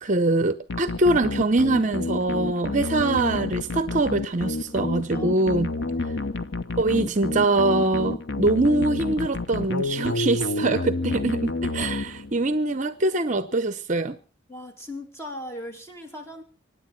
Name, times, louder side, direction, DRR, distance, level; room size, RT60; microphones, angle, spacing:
voice 1, 0.0-5.7 6.8-14.2, right 2 dB, 40° right, 0.7 m, -23 dB
sound 1, 0.7-12.6, left 2 dB, 60° left, 0.9 m, -29 dB
voice 2, 5.1-5.4 5.7-6.7 14.5-16.4, left 1 dB, 15° left, 2.6 m, -39 dB
24.5 x 9.8 x 5.8 m
head